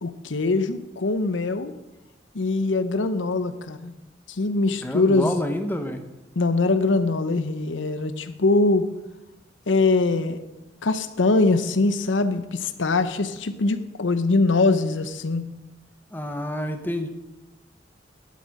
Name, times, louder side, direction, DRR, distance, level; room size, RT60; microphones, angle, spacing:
voice 1, 0.0-1.7 2.3-3.9 4.3-5.4 6.4-8.8 9.7-10.4 10.8-15.4, left 3 dB, 90° left, 11 dB, 0.8 m, -22 dB
voice 2, 4.8-6.0 16.1-17.1, left 1 dB, 10° left, 6 dB, 0.9 m, -28 dB
11.5 x 8.4 x 5.3 m, 1.0 s
head